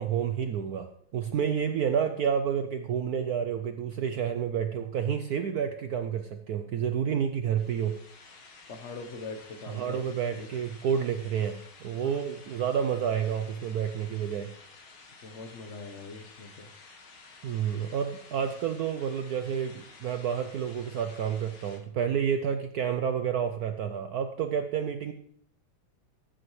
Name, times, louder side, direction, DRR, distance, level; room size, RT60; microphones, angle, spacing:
voice 1, 0.0-7.9 9.7-14.5 17.4-25.1, right 8 dB, 75° right, 7 dB, 0.8 m, -29 dB
sound 1, 7.6-21.8, left 4 dB, 60° left, 2.0 m, -52 dB
voice 2, 8.7-10.0 10.3-10.5 12.0-12.2 15.2-16.7, left 3 dB, 40° left, 6 dB, 1.1 m, -42 dB
16.0 x 8.7 x 3.2 m, 0.66 s
omnidirectional pair, 2.3 m